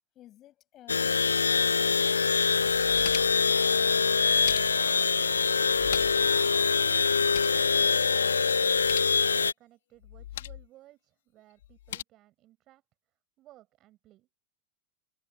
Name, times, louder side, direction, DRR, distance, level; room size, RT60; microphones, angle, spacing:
voice 1, 0.1-2.5, left 13 dB, 35° left, 7.9 m, -55 dB
sound 1, 0.9-9.5, left 5 dB, 75° left, 0.4 m, -24 dB
sound 2, 2.6-3.5 4.2-5.0 5.7-6.3 6.6-6.7 7.0-7.6 8.7-9.2 10.0-10.7 11.6-12.0, left 13 dB, 55° left, 4.2 m, -39 dB
voice 2, 4.7-8.8 9.3-14.3, right 15 dB, 35° right, 7.9 m, -58 dB
figure-of-eight pair, 90°, 0 cm